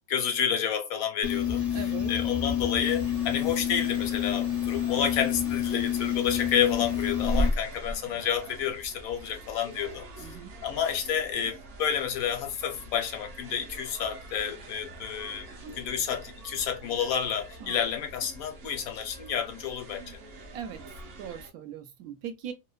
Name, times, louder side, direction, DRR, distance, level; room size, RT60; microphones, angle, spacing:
voice 1, 0.1-1.8 2.1-10.3 10.6-15.5 15.7-20.2, left 8 dB, 75° left, 1.0 m, -30 dB
sound 1, 1.2-7.5, left 10 dB, 50° left, 0.4 m, -29 dB
voice 2, 1.7-2.1 10.2-10.5 17.6-17.7 20.5-20.8 21.2-22.5, right 8 dB, 80° right, 1.0 m, -39 dB
sound 2, 2.8-21.5, equal, 60° right, 0.6 m, -40 dB
2.7 x 2.1 x 2.2 m
omnidirectional pair, 1.6 m